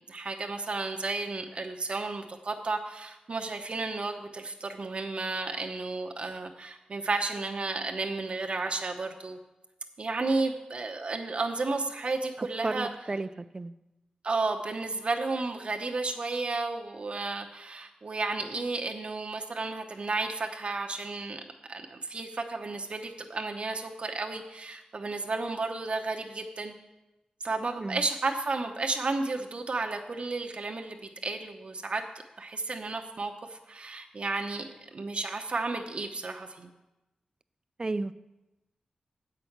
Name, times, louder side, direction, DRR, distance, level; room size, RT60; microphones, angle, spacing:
voice 1, 0.1-9.4 10.0-12.9 14.2-21.4 21.7-26.7 27.4-31.0 31.2-32.0 32.4-34.7 34.9-36.7, right 3 dB, 50° right, 3 dB, 0.8 m, -32 dB
voice 2, 12.4-13.3 13.5-13.7 27.8-28.1 37.8-38.1, right 3 dB, 30° right, 14 dB, 0.4 m, -33 dB
8.2 x 5.9 x 7.8 m, 0.99 s
wide cardioid pair, 105°, 2 cm